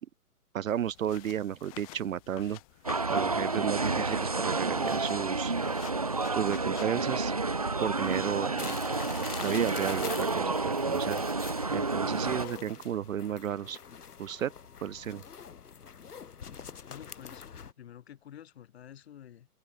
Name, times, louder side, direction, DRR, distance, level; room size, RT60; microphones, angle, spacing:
voice 1, 0.5-2.6 3.1-5.5 6.3-7.3 7.8-8.8 9.4-11.2 11.7-13.8 14.2-14.5 14.8-15.2, right 10 dB, 60° right, 0.7 m, -33 dB
sound 1, 0.7-12.6, left 23 dB, 25° left, 3.2 m, -53 dB
sound 2, 2.8-12.5, right 3 dB, 25° right, 0.5 m, -30 dB
sound 3, 8.6-17.7, left 7 dB, 75° left, 7.7 m, -45 dB
voice 2, 16.8-17.4 17.8-19.5, left 10 dB, 40° left, 3.8 m, -49 dB
open air
hypercardioid pair, 170°, 46 cm